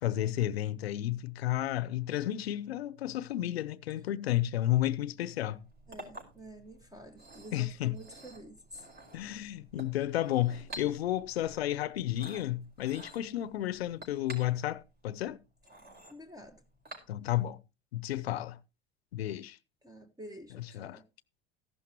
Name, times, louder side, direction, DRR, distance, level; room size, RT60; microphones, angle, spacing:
voice 1, 0.0-5.6 7.5-8.0 9.1-15.4 17.1-17.6 17.9-18.6 19.1-19.6 20.7-21.0, left 13 dB, 80° left, 0.8 m, -32 dB
Chink clink, 5.5-17.5, right 2 dB, 30° right, 5.1 m, -51 dB
voice 2, 5.9-8.9 16.1-16.6 19.8-21.0, right 1 dB, 10° right, 1.5 m, -49 dB
14.5 x 12.0 x 3.0 m
hypercardioid pair, 75°, 30 cm